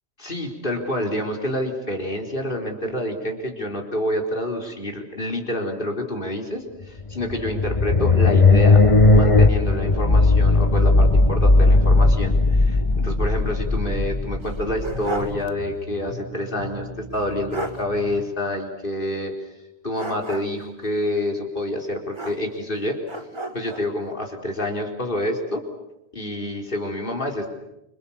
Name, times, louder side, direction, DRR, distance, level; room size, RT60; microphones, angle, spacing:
voice 1, 0.2-19.3 19.8-23.0 23.5-25.6 26.1-27.5, left 1 dB, 55° left, 2 dB, 4.3 m, -28 dB
sound 1, 7.0-15.3, left 3 dB, 30° left, 1.2 m, -17 dB
sound 2, 12.9-18.2, equal, 40° right, 2.9 m, -39 dB
sound 3, 14.4-15.4 15.8-15.9 17.1-17.2 17.5-17.8 19.9-20.7 22.1-22.7 23.1-23.9, right 2 dB, 25° right, 2.0 m, -33 dB
29.0 x 26.5 x 7.3 m, 0.90 s
omnidirectional pair, 1.1 m